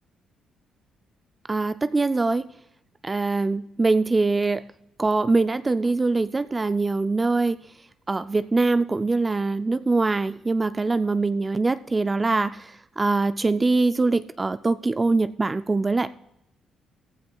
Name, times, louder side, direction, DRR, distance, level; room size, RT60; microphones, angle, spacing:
voice 1, 1.5-2.5 3.0-4.7 5.0-7.6 8.1-12.7 13.0-16.1, right 3 dB, 25° right, 12 dB, 0.4 m, -23 dB
15.0 x 15.0 x 2.3 m, 0.79 s
cardioid pair, 90°, 0 cm